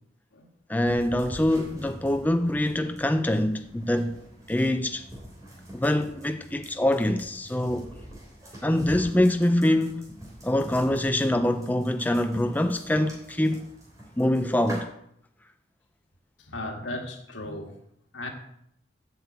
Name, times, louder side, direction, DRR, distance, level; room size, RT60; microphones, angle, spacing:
voice 1, 0.7-4.2 4.5-5.0 5.7-7.9 8.6-10.1 10.4-13.6 14.2-14.9, left 1 dB, 10° left, 0.4 m, -24 dB
sound 1, 0.9-14.8, right 1 dB, 15° right, 3.3 m, -45 dB
voice 2, 16.4-17.7 18.1-18.3, left 1 dB, 90° left, 1.8 m, -36 dB
7.9 x 6.6 x 8.0 m
head